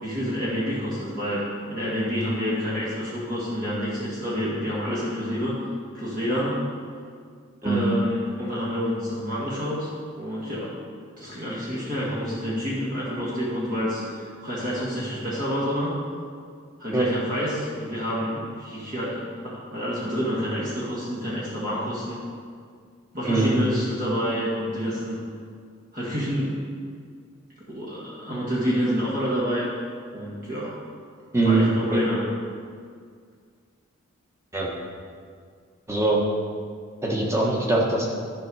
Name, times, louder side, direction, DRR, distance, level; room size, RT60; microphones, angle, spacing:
voice 1, 0.0-5.6 5.9-6.6 7.6-9.9 10.2-10.7 11.2-16.0 16.8-22.2 23.1-25.2 25.9-26.6 27.7-29.7 30.1-30.7 31.3-32.2, equal, 40° right, -7 dB, 1.8 m, -28 dB
voice 2, 23.3-23.6 31.3-31.6 31.9-32.0 34.5-34.7 35.9-36.2 37.0-38.1, right 2 dB, 15° right, -3 dB, 1.4 m, -22 dB
13.0 x 5.4 x 4.8 m, 2.1 s
head